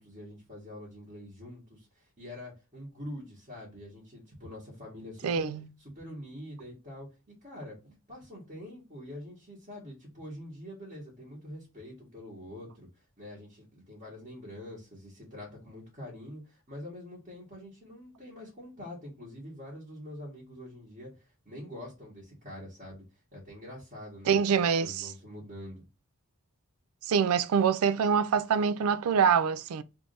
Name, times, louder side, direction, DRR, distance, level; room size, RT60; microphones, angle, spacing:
voice 1, 0.0-5.5 5.8-23.0 23.3-25.8, left 1 dB, 35° right, 1.7 m, -45 dB
voice 2, 5.2-5.6 24.3-25.1 27.1-29.8, right 6 dB, 70° right, 0.4 m, -25 dB
3.4 x 2.6 x 3.2 m
head